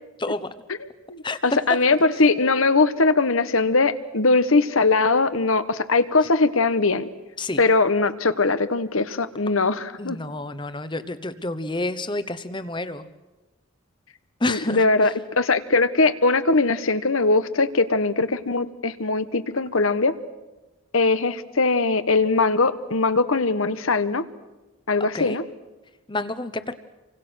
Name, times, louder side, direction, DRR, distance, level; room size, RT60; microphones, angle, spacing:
voice 1, 0.2-0.5 1.2-1.4 7.4-7.6 10.0-13.1 14.4-15.1 25.1-25.4 26.1-26.7, left 2 dB, 20° left, 12 dB, 1.0 m, -29 dB
voice 2, 1.1-7.1 7.6-10.2 14.5-20.1 20.9-24.3 24.9-25.4, left 3 dB, 75° left, 12 dB, 1.3 m, -21 dB
30.0 x 24.5 x 6.4 m, 1.1 s
head